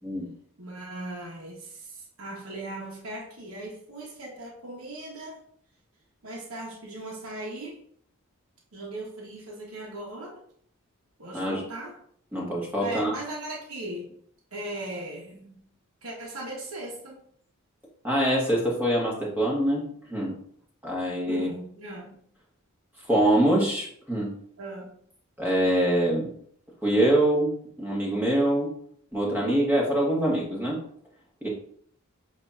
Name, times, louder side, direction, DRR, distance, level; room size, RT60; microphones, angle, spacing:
voice 1, 0.6-5.4 6.2-7.8 8.7-10.4 11.2-12.0 12.8-14.1 14.5-15.6 16.0-17.2 21.3-22.2 24.6-24.9, right 2 dB, 70° right, -3 dB, 1.1 m, -38 dB
voice 2, 12.3-13.1 18.0-19.8 20.1-20.4 20.8-21.5 23.1-24.3 25.4-26.3 26.8-28.7 29.1-30.8 31.4-31.5, right 1 dB, 10° right, -4 dB, 1.3 m, -24 dB
7.5 x 2.7 x 2.4 m, 0.62 s
head